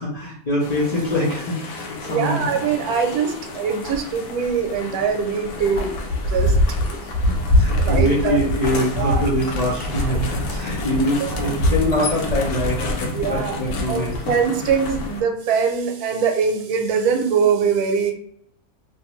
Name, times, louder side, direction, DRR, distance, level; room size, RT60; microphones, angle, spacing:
voice 1, 0.0-2.4 7.3-14.1, left 1 dB, 50° left, -5 dB, 0.4 m, -24 dB
sound 1, 0.6-15.2, left 1 dB, 85° left, 1.1 m, -25 dB
voice 2, 2.0-6.0 6.3-7.1 7.8-8.4 9.0-9.2 11.2-11.5 13.1-18.1, right 6 dB, 85° right, 4 dB, 1.1 m, -22 dB
2.5 x 2.4 x 3.0 m, 0.71 s
omnidirectional pair, 1.6 m